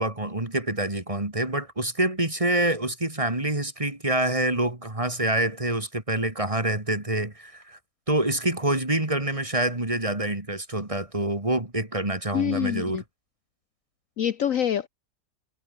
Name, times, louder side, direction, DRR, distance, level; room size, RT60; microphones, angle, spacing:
voice 1, 0.0-7.8 8.1-13.0, right 1 dB, 20° right, 2.5 m, -26 dB
voice 2, 12.3-13.0 14.2-14.9, left 9 dB, 60° left, 1.1 m, -26 dB
omnidirectional pair, 1.7 m